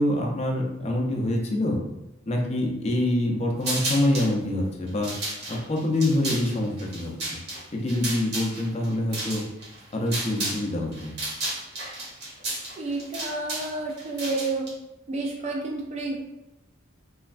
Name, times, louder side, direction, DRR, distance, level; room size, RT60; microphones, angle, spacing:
voice 1, 0.0-1.8 2.3-5.1 5.5-7.4 7.7-9.4 9.9-11.1, left 1 dB, 30° left, 1 dB, 0.4 m, -25 dB
sound 1, 3.6-4.3 4.9-10.7 10.9-14.7, right 1 dB, 55° right, 0.9 m, -33 dB
voice 2, 12.8-14.7 15.1-16.2, right 2 dB, 35° right, 1 dB, 0.3 m, -30 dB
3.1 x 2.2 x 2.4 m, 0.95 s
head